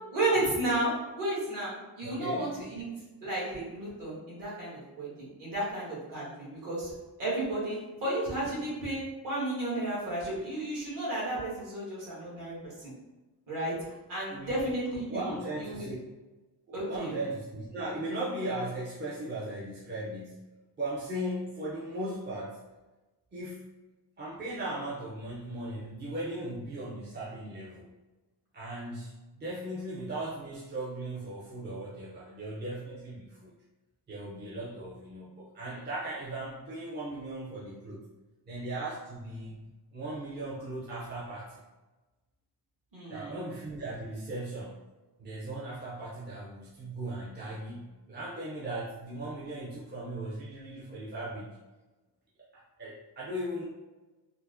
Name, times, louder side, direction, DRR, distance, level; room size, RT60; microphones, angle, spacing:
voice 1, 0.1-2.9 3.2-6.9 7.2-12.9 13.5-13.7 14.1-15.9 16.7-17.1 42.9-43.3, right 1 dB, 50° right, -7 dB, 1.5 m, -33 dB
voice 2, 2.0-2.6 14.3-14.7 15.1-15.9 16.7-20.5 20.8-22.6 23.3-23.7 24.2-27.9 28.5-33.5 34.1-38.0 38.5-39.6 39.9-41.6 43.1-44.8 45.2-51.5 52.5-53.6, right 1 dB, 25° right, -8 dB, 0.6 m, -37 dB
4.4 x 2.1 x 2.6 m, 1.2 s
wide cardioid pair, 165°, 40 cm